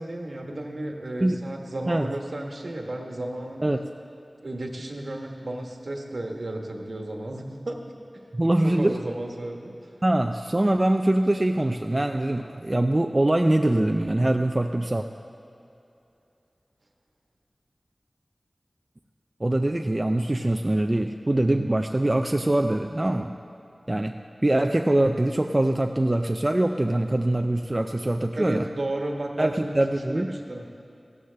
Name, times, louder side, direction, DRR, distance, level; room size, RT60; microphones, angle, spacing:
voice 1, 0.0-3.7 4.4-8.2 8.6-9.7 28.3-30.7, right 1 dB, 60° right, 2 dB, 1.2 m, -33 dB
voice 2, 8.3-9.0 10.0-15.1 19.4-23.3 23.9-28.7 29.4-30.4, right 1 dB, 30° right, 5 dB, 0.4 m, -23 dB
16.0 x 13.0 x 3.4 m, 2.7 s
wide cardioid pair, 60°, 0 cm